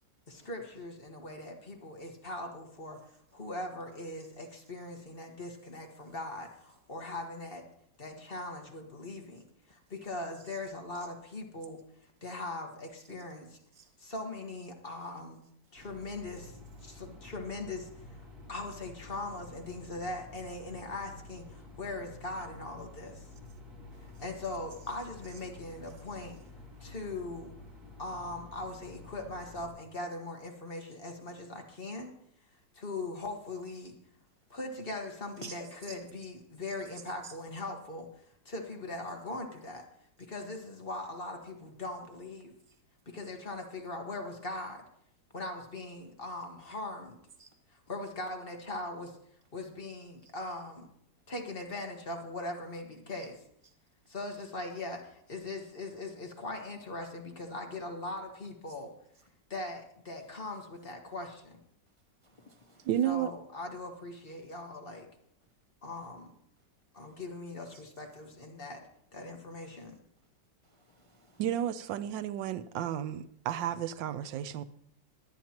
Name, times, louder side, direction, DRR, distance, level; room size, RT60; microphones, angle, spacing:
voice 1, 0.3-3.0 3.3-7.7 8.0-9.4 9.7-11.8 12.2-13.6 14.0-15.4 15.7-18.2 18.5-23.2 24.2-26.4 26.8-27.5 28.0-32.1 32.7-34.0 34.5-38.1 38.4-39.9 40.2-42.5 43.0-44.8 45.3-47.2 47.7-49.2 49.5-50.9 51.3-53.4 54.1-58.9 59.5-61.6 63.0-65.1 65.8-66.3 66.9-69.9, left 2 dB, 35° left, 1.4 m, -40 dB
sound 1, 15.8-29.7, left 2 dB, 55° right, 2.2 m, -50 dB
voice 2, 62.2-62.9 67.1-67.2 67.7-67.8 70.8-71.4, right 4 dB, 60° left, 0.3 m, -50 dB
voice 3, 62.8-63.3 71.4-74.6, right 10 dB, 85° right, 1.4 m, -32 dB
22.0 x 9.1 x 2.9 m
omnidirectional pair, 2.0 m